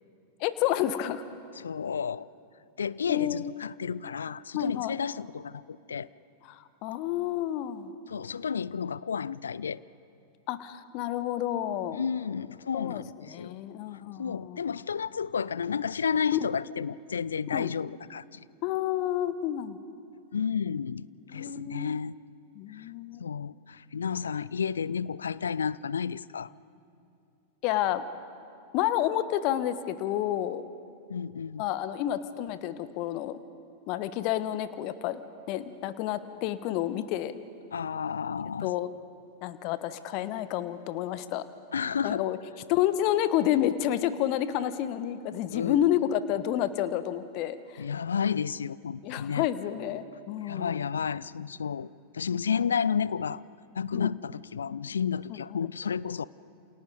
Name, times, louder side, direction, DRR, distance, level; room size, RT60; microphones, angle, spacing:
voice 1, 0.4-1.2 3.1-3.5 4.5-5.0 6.4-7.9 10.5-12.0 12.7-13.0 13.3-14.6 16.3-16.5 17.5-17.7 18.6-19.8 21.3-22.0 22.5-23.2 27.6-28.0 28.7-30.6 31.6-33.4 33.9-35.2 35.5-37.3 38.6-38.9 39.4-41.4 42.0-42.4 42.7-47.8 49.0-50.9 52.5-52.6 53.9-54.1 55.3-55.6, left 12 dB, 45° left, 13 dB, 1.1 m, -30 dB
voice 2, 1.6-2.3 2.8-6.1 8.1-9.8 11.9-13.6 14.2-18.4 20.3-22.2 22.7-22.9 23.2-26.5 31.1-31.6 37.7-38.7 41.7-42.3 45.5-45.8 47.8-49.5 50.4-51.9 52.1-53.4 53.7-56.3, left 7 dB, 70° left, 20 dB, 0.4 m, -31 dB
28.5 x 28.0 x 4.0 m, 2.5 s
figure-of-eight pair, 90°, 0 cm